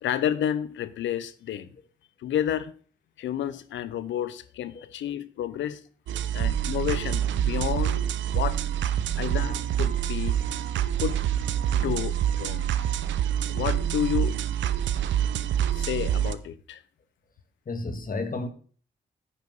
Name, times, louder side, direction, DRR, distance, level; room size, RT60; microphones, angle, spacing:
voice 1, 0.0-1.7 2.2-2.7 3.2-5.8 6.3-8.6 9.2-10.4 11.0-11.2 11.7-12.7 13.5-14.4 15.7-16.8, left 10 dB, 80° left, 0.8 m, -30 dB
sound 1, 6.1-16.3, right 10 dB, 80° right, 0.7 m, -26 dB
voice 2, 17.7-18.5, left 3 dB, 45° left, 1.9 m, -34 dB
9.8 x 5.3 x 7.9 m
supercardioid pair, 50°, 19 cm